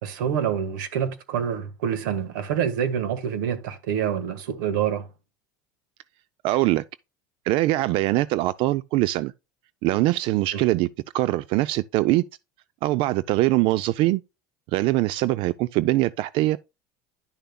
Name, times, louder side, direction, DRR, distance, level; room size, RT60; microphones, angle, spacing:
voice 1, 0.0-5.1 10.5-10.6, right 8 dB, 80° right, 1.5 m, -26 dB
voice 2, 6.4-6.8 7.5-9.3 9.8-10.9 11.1-12.3 12.8-14.2 14.7-16.6, right 17 dB, 60° right, 0.4 m, -22 dB
10.5 x 6.7 x 2.2 m
supercardioid pair, 95°, 10 cm